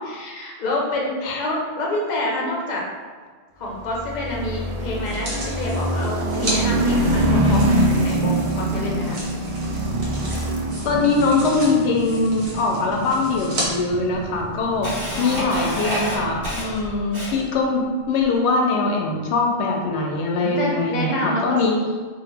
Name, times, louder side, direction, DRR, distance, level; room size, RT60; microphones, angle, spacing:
voice 1, 0.1-2.8 3.6-9.2 15.0-15.7 20.3-21.6, left 1 dB, 50° left, -2 dB, 0.7 m, -27 dB
sound 1, 3.8-17.0, right 1 dB, 55° right, 0.4 m, -25 dB
sound 2, 5.0-6.6 7.4-13.7 14.3-14.4, right 1 dB, 75° right, 1.1 m, -34 dB
voice 2, 10.8-14.9 15.2-21.7, left 3 dB, 90° left, 0 dB, 0.8 m, -22 dB
Camera, 12.7-12.8 13.6-13.7 14.2-17.6, equal, 30° right, 1.3 m, -29 dB
2.9 x 2.4 x 3.3 m, 1.5 s
omnidirectional pair, 1.1 m